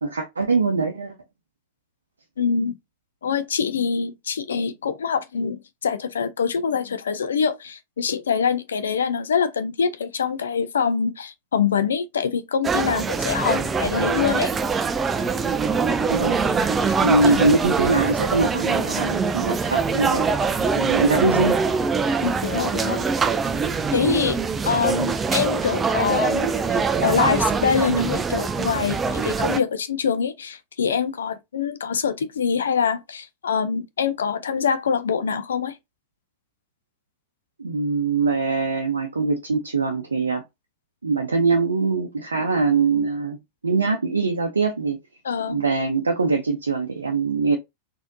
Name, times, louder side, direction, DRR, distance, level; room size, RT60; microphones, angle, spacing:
voice 1, 0.0-1.2 16.1-16.4 17.0-20.5 20.8-21.6 37.6-40.4 41.0-43.4 43.6-45.0 45.5-47.6, right 3 dB, 75° right, 0.6 m, -22 dB
voice 2, 2.4-2.7 3.2-14.5 17.2-17.3 22.2-23.0 23.9-24.4 24.6-35.8 45.2-45.6, left 6 dB, 65° left, 0.5 m, -24 dB
sound 1, 12.6-29.6, right 5 dB, 20° right, 0.4 m, -23 dB
4.1 x 2.8 x 2.6 m
figure-of-eight pair, 90°, 0 cm